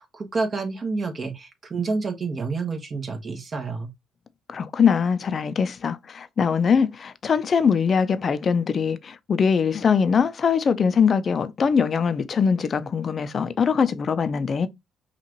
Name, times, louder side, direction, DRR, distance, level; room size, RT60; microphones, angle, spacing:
voice 1, 0.0-3.9, right 4 dB, 40° right, 1.2 m, -29 dB
voice 2, 4.5-14.7, left 6 dB, 45° left, 0.6 m, -22 dB
5.6 x 2.5 x 3.0 m
supercardioid pair, 75°, 0 cm